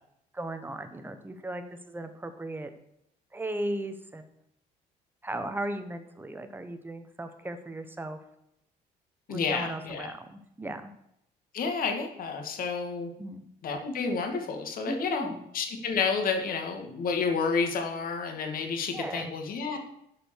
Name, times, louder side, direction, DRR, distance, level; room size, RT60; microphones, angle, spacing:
voice 1, 0.3-2.7 3.3-4.3 5.2-8.2 9.3-10.9 13.2-13.4 14.9-15.4 18.9-19.3, right 1 dB, 10° right, 8 dB, 1.2 m, -36 dB
voice 2, 9.3-10.1 11.5-13.1 13.6-15.3 15.5-19.8, left 5 dB, 60° left, 5 dB, 2.2 m, -30 dB
12.0 x 5.2 x 6.6 m, 0.78 s
cardioid pair, 110°, 17 cm